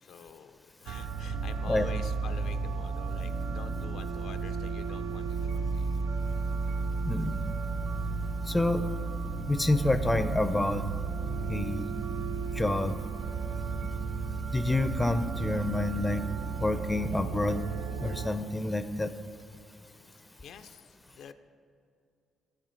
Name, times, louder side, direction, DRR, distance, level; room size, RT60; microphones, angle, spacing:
voice 1, 0.0-5.9 20.4-21.3, left 7 dB, 75° left, 9 dB, 0.4 m, -47 dB
sound 1, 0.9-18.3, right 4 dB, 80° right, 0.4 m, -33 dB
voice 2, 7.0-7.4 8.5-8.8 9.5-10.8 11.5-11.9 12.5-12.9 14.5-16.2 16.6-17.6 18.0-19.1, left 2 dB, 15° left, 11 dB, 0.4 m, -28 dB
8.9 x 7.5 x 4.4 m, 2.4 s
cardioid pair, 90°, 0 cm